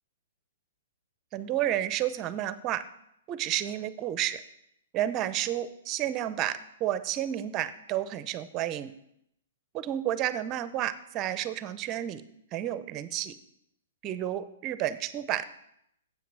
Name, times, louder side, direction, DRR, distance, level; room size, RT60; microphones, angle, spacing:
voice 1, 1.3-2.8 3.3-4.4 4.9-8.9 9.7-12.2 12.5-13.3 14.0-15.5, right 12 dB, 30° right, 14 dB, 0.6 m, -31 dB
8.0 x 5.9 x 6.1 m, 0.76 s
hypercardioid pair, 135°, 0 cm